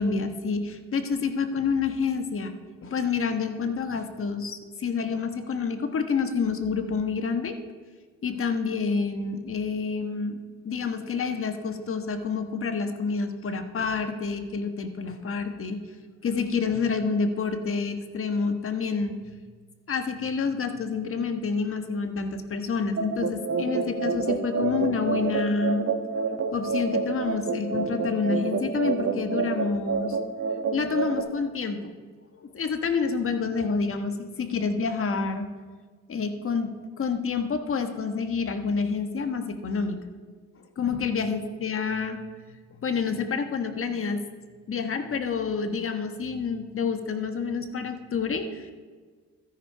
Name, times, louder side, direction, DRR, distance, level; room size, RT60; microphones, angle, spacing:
voice 1, 0.0-2.5 2.8-7.6 8.2-10.4 10.6-15.8 16.2-19.4 19.9-25.9 26.5-30.2 30.7-31.9 32.3-35.5 36.1-36.7 37.0-40.0 40.8-42.2 42.7-44.2 44.7-48.7, left 5 dB, 45° left, 7 dB, 1.4 m, -28 dB
sound 1, 23.0-31.2, right 5 dB, 55° right, 1.4 m, -28 dB
13.5 x 10.5 x 4.7 m, 1.5 s
cardioid pair, 90°, 30 cm